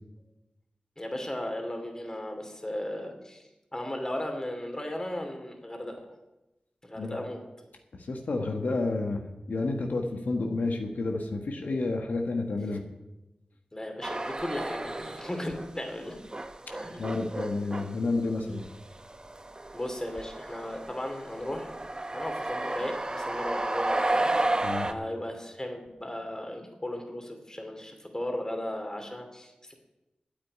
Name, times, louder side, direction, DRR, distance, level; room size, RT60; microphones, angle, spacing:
voice 1, 1.0-6.1 6.8-7.4 13.7-16.2 16.8-17.1 19.7-21.7 22.1-24.3 24.8-29.7, left 1 dB, 20° left, 4 dB, 2.7 m, -36 dB
voice 2, 7.9-9.2 9.5-12.8 17.0-18.6 24.6-24.9, left 3 dB, 85° left, 3 dB, 1.3 m, -30 dB
sound 1, 14.0-15.7 16.0-24.9, right 2 dB, 30° right, 0.8 m, -33 dB
8.9 x 8.8 x 9.3 m, 0.99 s
wide cardioid pair, 75°, 3 cm